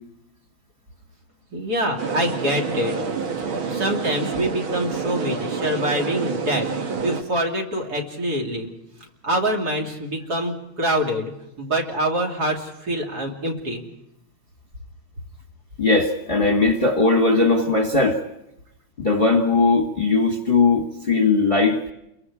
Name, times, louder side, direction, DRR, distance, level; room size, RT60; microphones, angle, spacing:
voice 1, 1.5-3.3 3.7-6.7 7.0-8.7 9.2-13.8, equal, 50° right, 0 dB, 3.3 m, -25 dB
sound 1, 2.0-7.2, right 5 dB, 90° right, 2.5 m, -28 dB
voice 2, 15.8-18.2 19.0-21.8, left 3 dB, 30° left, 4 dB, 1.5 m, -19 dB
29.5 x 22.5 x 4.9 m, 0.84 s
omnidirectional pair, 2.2 m